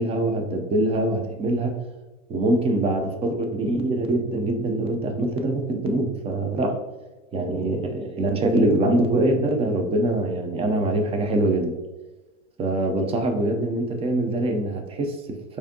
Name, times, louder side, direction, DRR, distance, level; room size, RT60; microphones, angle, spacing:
voice 1, 0.0-1.7 2.3-6.8 7.3-11.8 12.6-15.6, right 1 dB, 15° right, 5 dB, 0.5 m, -24 dB
4.8 x 2.6 x 2.8 m, 1.1 s
hypercardioid pair, 115°, 37 cm